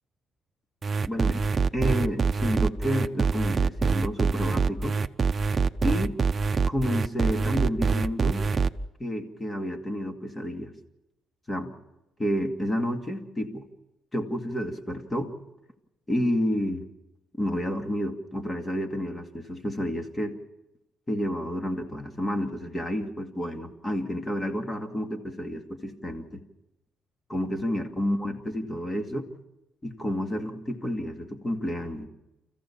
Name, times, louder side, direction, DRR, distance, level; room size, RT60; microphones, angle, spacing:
sound 1, 0.8-8.7, right 4 dB, 35° right, 0.7 m, -25 dB
voice 1, 1.1-1.4 1.7-5.0 5.8-6.2 6.7-8.4 9.0-10.7 11.5-11.7 12.2-13.6 14.1-15.3 16.1-16.8 17.4-20.4 21.1-26.4 27.3-29.3 29.8-32.1, equal, 20° left, 5 dB, 2.4 m, -30 dB
30.0 x 15.0 x 7.3 m, 0.94 s
cardioid pair, 90°, 0 cm